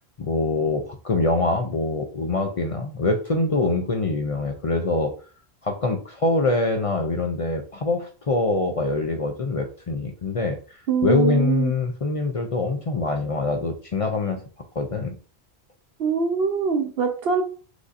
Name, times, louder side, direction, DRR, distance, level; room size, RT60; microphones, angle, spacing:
voice 1, 0.2-5.1 5.6-14.4 14.8-15.2, left 3 dB, 45° left, 4 dB, 0.4 m, -24 dB
voice 2, 10.9-11.7 16.0-17.4, right 5 dB, 65° right, 5 dB, 0.8 m, -23 dB
6.2 x 2.7 x 2.5 m, 0.39 s
omnidirectional pair, 1.1 m